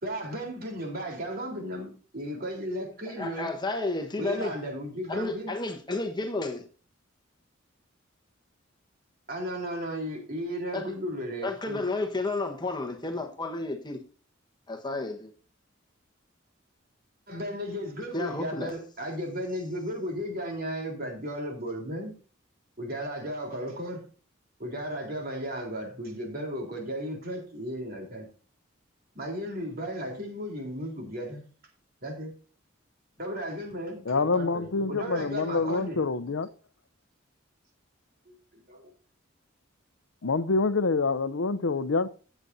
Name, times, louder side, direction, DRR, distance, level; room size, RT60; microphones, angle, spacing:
voice 1, 0.0-3.5 4.2-5.5 9.3-11.8 17.3-22.1 22.8-24.0 24.6-28.3 29.1-31.4 32.0-32.3 33.2-36.0 38.3-38.9, equal, 50° right, 3.9 m, -35 dB
voice 2, 3.2-4.6 5.1-6.6 10.7-10.9 11.4-14.0 14.7-15.3 18.1-18.7, left 2 dB, 20° left, 1.3 m, -31 dB
voice 3, 34.1-36.5 40.2-42.1, left 3 dB, 85° left, 0.7 m, -26 dB
16.0 x 8.1 x 2.7 m
head